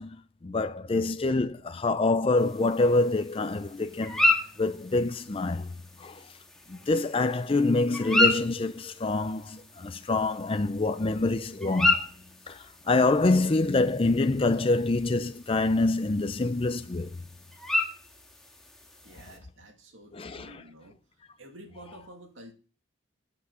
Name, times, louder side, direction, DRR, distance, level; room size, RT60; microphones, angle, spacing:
voice 1, 0.0-4.2 4.6-6.3 6.7-12.1 12.5-17.1 20.1-20.6, left 2 dB, 25° left, 0.5 m, -26 dB
sound 1, 2.4-19.4, left 2 dB, ahead, 1.8 m, -32 dB
voice 2, 19.0-21.0 21.4-22.5, right 1 dB, 70° right, 2.2 m, -50 dB
16.0 x 6.0 x 5.5 m
head